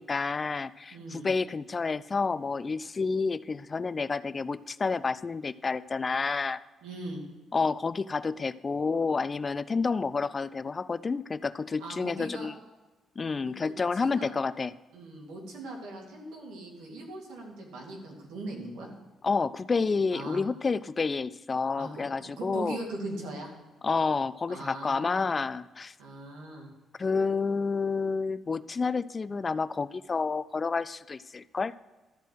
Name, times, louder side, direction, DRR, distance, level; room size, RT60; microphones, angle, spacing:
voice 1, 0.0-6.6 7.5-12.5 13.2-14.7 19.2-22.8 23.8-25.9 27.0-31.7, left 4 dB, 35° left, 16 dB, 0.3 m, -29 dB
voice 2, 0.9-1.3 6.8-7.2 11.8-12.5 13.5-13.7 14.0-14.3 14.9-18.9 20.1-20.4 21.8-21.9 22.2-23.5 24.5-25.3 26.0-26.7, right 2 dB, 90° right, 0 dB, 2.4 m, -40 dB
13.0 x 4.6 x 7.8 m, 1.2 s
cardioid pair, 90°, 0 cm